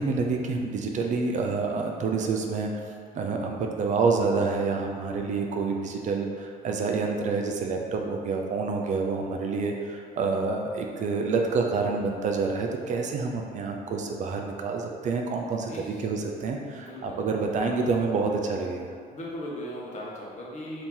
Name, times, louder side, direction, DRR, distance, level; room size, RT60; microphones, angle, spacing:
voice 1, 0.0-2.7 3.1-18.9, right 4 dB, 45° right, 2 dB, 0.4 m, -28 dB
voice 2, 15.7-16.0 16.7-17.2 19.1-20.8, left 1 dB, 45° left, -4 dB, 0.8 m, -38 dB
2.9 x 2.7 x 3.7 m, 2.2 s
cardioid pair, 110°, 17 cm